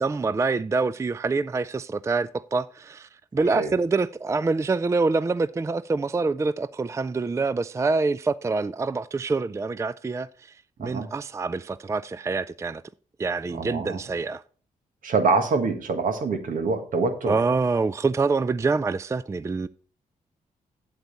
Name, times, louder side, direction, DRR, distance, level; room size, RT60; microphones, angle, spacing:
voice 1, 0.0-10.5 10.8-12.8 13.2-14.4 17.3-19.7, right 3 dB, 20° right, 0.4 m, -26 dB
voice 2, 13.5-14.0 15.0-17.3, right 4 dB, 70° right, 1.6 m, -25 dB
8.1 x 8.1 x 4.1 m
cardioid pair, 60°, 14 cm